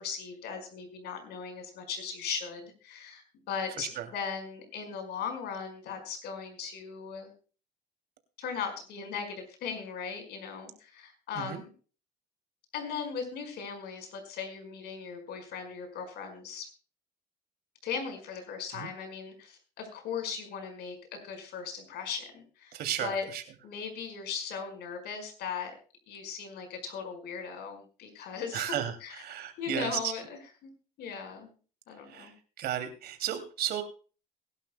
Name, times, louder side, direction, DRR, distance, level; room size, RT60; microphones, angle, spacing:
voice 1, 0.0-7.3 8.4-11.7 12.7-16.7 17.8-23.3 23.6-25.7 26.1-28.8 29.0-29.1 29.6-30.7 31.0-31.5 31.9-32.3, left 6 dB, 75° left, 5 dB, 5.0 m, -38 dB
voice 2, 3.8-4.1 11.3-11.6 18.7-18.9 22.7-23.4 28.5-30.1 32.0-33.8, right 10 dB, 70° right, 7 dB, 2.7 m, -34 dB
22.5 x 11.5 x 2.2 m, 0.37 s
cardioid pair, 110°, 17 cm